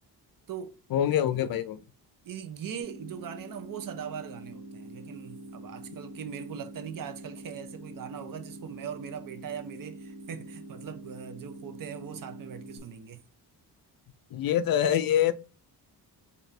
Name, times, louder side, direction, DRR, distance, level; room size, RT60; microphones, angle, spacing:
voice 1, 0.9-1.8 14.3-15.3, left 10 dB, 60° left, 0.5 m, -25 dB
voice 2, 2.2-13.2, right 8 dB, 55° right, 0.7 m, -40 dB
sound 1, 2.8-12.8, right 1 dB, ahead, 1.5 m, -45 dB
4.2 x 2.6 x 3.2 m
cardioid pair, 110°, 39 cm